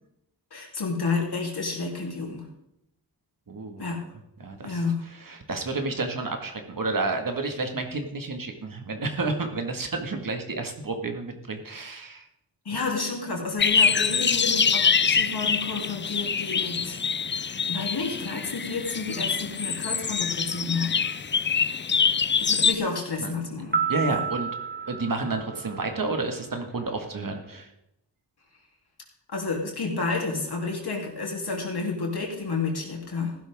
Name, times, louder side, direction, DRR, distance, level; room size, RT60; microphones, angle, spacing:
voice 1, 0.5-2.5 3.8-4.0 4.6-5.0 12.6-21.0 22.4-23.8 24.1-24.2 29.3-33.4, left 4 dB, 65° left, -1 dB, 3.4 m, -30 dB
voice 2, 3.5-3.8 4.4-4.8 5.1-12.3 23.2-23.3 23.9-24.5 24.9-27.7, right 3 dB, 50° right, 5 dB, 1.9 m, -30 dB
sound 1, 13.6-22.7, left 6 dB, 30° left, 0.4 m, -25 dB
sound 2, 23.7-26.2, right 6 dB, 25° right, 1.5 m, -31 dB
15.5 x 11.5 x 3.6 m, 0.81 s
wide cardioid pair, 100°, 41 cm